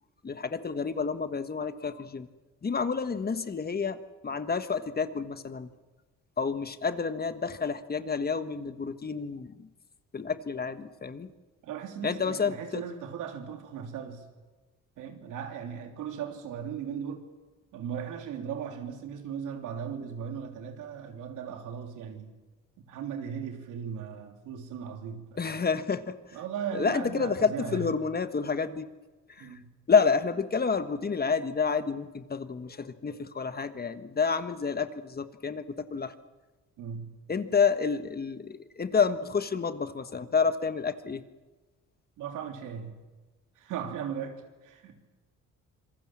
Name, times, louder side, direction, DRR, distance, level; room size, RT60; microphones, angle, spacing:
voice 1, 0.2-2.3 2.6-5.7 6.4-9.7 10.1-11.3 12.0-12.8 25.4-26.4 26.7-28.9 29.3-29.6 29.9-36.1 37.3-41.2, left 5 dB, 30° left, 1.4 m, -29 dB
voice 2, 11.6-14.2 15.0-17.3 17.7-22.3 22.8-25.3 26.3-27.9 29.4-29.6 36.8-37.2 42.2-43.0 43.6-45.1, right 7 dB, 90° right, 3.2 m, -37 dB
26.0 x 22.0 x 7.5 m
cardioid pair, 90°, 30 cm